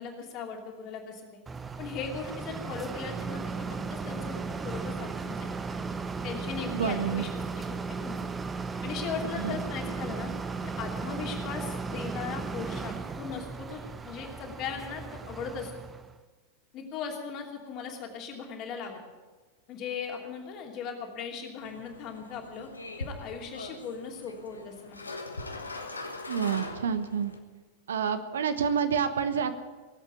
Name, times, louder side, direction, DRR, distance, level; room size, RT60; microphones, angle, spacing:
voice 1, 0.0-1.4 1.8-5.5 6.2-7.3 7.8-8.2 8.8-10.3 10.6-15.7 16.7-19.0 19.7-22.7 23.0-25.0, left 6 dB, 40° left, 1 dB, 2.9 m, -38 dB
sound 1, 1.5-16.1, right 4 dB, 15° right, 0.9 m, -36 dB
voice 2, 6.7-7.2 9.4-9.6 26.3-27.3 27.9-29.5, right 7 dB, 65° right, 10 dB, 1.0 m, -28 dB
sound 2, 21.6-27.4, left 2 dB, 80° left, 1.4 m, -41 dB
19.0 x 8.2 x 9.0 m, 1.3 s
figure-of-eight pair, 90°, 0 cm